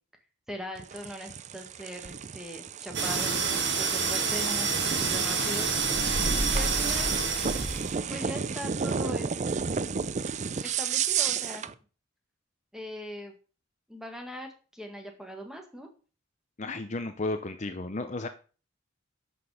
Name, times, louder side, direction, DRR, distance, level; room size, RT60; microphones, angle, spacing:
voice 1, 0.5-6.0 6.4-7.1 8.1-9.4 10.6-11.6 12.7-13.3 13.9-15.9, equal, ahead, 4 dB, 1.7 m, -40 dB
sound 1, 0.8-11.7, right 6 dB, 35° right, 0.4 m, -33 dB
sound 2, 2.9-8.0, right 4 dB, 55° right, 2.1 m, -27 dB
voice 2, 16.6-18.3, left 2 dB, 35° left, 8 dB, 0.7 m, -33 dB
11.0 x 6.1 x 4.9 m, 0.36 s
head